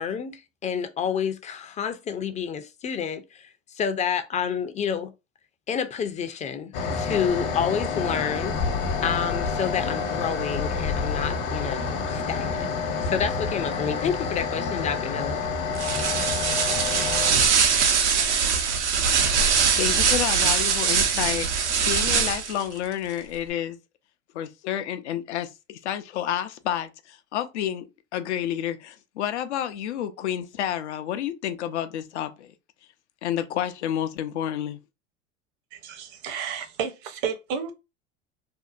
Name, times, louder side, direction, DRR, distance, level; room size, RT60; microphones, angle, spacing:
voice 1, 0.0-5.1 5.7-8.6 9.0-12.6 13.0-15.5, left 7 dB, 20° left, 0.4 m, -29 dB
sound 1, 6.7-17.3, left 5 dB, 55° left, 0.9 m, -28 dB
sound 2, 15.7-22.6, right 6 dB, 90° right, 0.6 m, -22 dB
voice 2, 19.8-23.8 24.3-32.5 33.2-34.8, left 10 dB, 80° left, 0.5 m, -30 dB
voice 3, 35.7-37.7, right 7 dB, 55° right, 0.7 m, -32 dB
2.6 x 2.1 x 2.4 m
hypercardioid pair, 80°, 34 cm